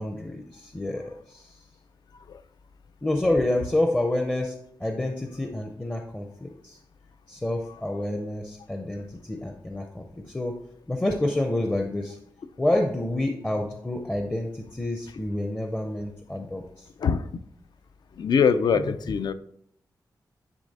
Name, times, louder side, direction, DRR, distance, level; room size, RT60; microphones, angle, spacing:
voice 1, 0.0-1.4 3.0-4.6 4.8-6.8 7.3-10.0 10.3-10.5 10.9-12.2 12.6-16.6, left 1 dB, 15° left, 3 dB, 0.5 m, -28 dB
voice 2, 17.0-17.3 18.2-19.3, left 6 dB, 65° left, 12 dB, 0.4 m, -23 dB
9.9 x 3.3 x 4.1 m, 0.71 s
wide cardioid pair, 165°, 8 cm